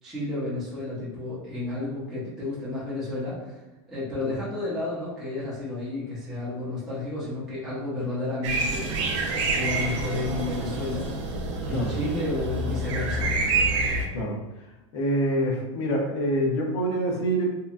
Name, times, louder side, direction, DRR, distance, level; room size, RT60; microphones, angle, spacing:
voice 1, 0.0-3.6 3.9-8.9 9.4-11.1 11.7-13.3, left 2 dB, 5° right, -11 dB, 0.6 m, -31 dB
sound 1, 8.4-14.1, right 3 dB, 70° right, 0.5 m, -27 dB
voice 2, 14.9-17.6, right 1 dB, 65° left, 0 dB, 0.7 m, -26 dB
2.8 x 2.2 x 2.4 m, 1.0 s
supercardioid pair, 175°, 16 cm